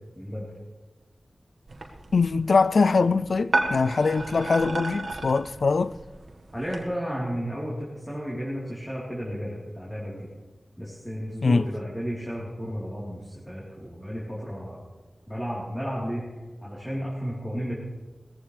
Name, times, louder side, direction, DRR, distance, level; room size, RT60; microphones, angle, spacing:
voice 1, 0.1-0.5 6.5-10.3 10.8-14.8 15.3-16.2 16.6-17.7, equal, 10° left, 3.8 m, -33 dB
sound 1, 1.7-6.8, right 2 dB, 80° right, 1.6 m, -33 dB
voice 2, 2.1-5.9 11.4-11.6, left 4 dB, 80° left, 0.4 m, -22 dB
18.0 x 14.5 x 3.4 m
wide cardioid pair, 85°, 0 cm